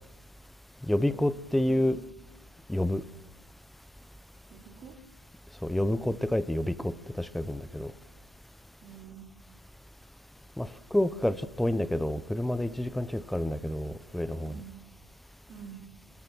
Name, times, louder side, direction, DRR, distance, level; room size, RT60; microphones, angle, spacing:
voice 1, 0.9-2.0 2.7-3.0 5.6-7.9 10.6-14.6, left 1 dB, ahead, 17 dB, 0.6 m, -29 dB
voice 2, 1.5-2.0 4.5-4.9 8.8-9.3 14.4-14.8 15.5-15.8, right 7 dB, 25° right, 0 dB, 3.3 m, -47 dB
29.5 x 16.5 x 6.1 m, 1.0 s
supercardioid pair, 150°, 6 cm